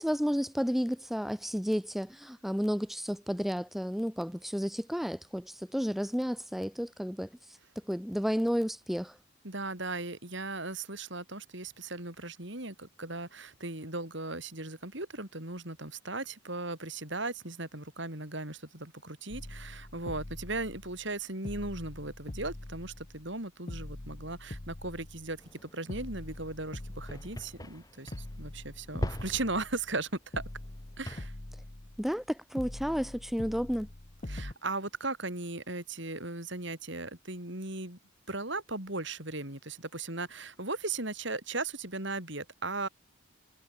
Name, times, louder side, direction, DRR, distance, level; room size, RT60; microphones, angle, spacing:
voice 1, 0.0-7.6 7.9-9.2 32.0-33.9, equal, ahead, 1.2 m, -32 dB
voice 2, 9.4-30.4 31.0-31.3 34.3-38.0 38.3-42.9, right 2 dB, 60° right, 4.8 m, -37 dB
sound 1, 19.3-21.1 21.4-23.4 23.7-25.5 25.9-27.8 28.1-30.0 30.3-32.2 32.6-34.5, left 1 dB, 35° left, 1.1 m, -44 dB
sound 2, 25.4-31.3, equal, 15° left, 2.8 m, -43 dB
head